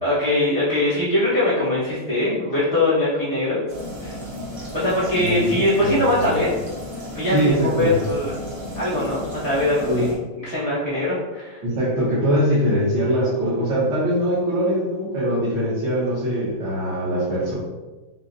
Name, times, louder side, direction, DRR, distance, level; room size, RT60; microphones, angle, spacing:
voice 1, 0.0-3.6 4.0-4.1 4.7-6.5 7.1-8.3 8.7-10.1 10.4-11.6, left 1 dB, 30° right, -9 dB, 0.7 m, -22 dB
sound 1, 3.7-10.1, equal, 45° right, 1.2 m, -34 dB
voice 2, 5.1-5.5 5.8-6.3 7.3-7.9 9.8-10.1 11.6-17.5, equal, 65° right, -9 dB, 1.6 m, -22 dB
5.4 x 2.2 x 2.5 m, 1.2 s
omnidirectional pair, 2.2 m